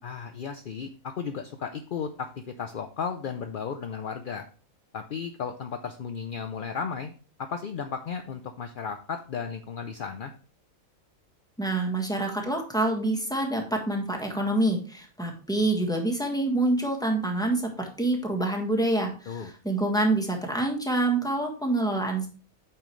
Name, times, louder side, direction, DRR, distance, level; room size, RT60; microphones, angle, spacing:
voice 1, 0.0-4.5 4.9-7.1 7.4-10.3 19.3-19.5, left 6 dB, 60° left, 7 dB, 0.5 m, -34 dB
voice 2, 11.6-22.3, right 2 dB, 5° left, 1 dB, 1.5 m, -26 dB
8.7 x 5.7 x 3.1 m, 0.38 s
omnidirectional pair, 1.5 m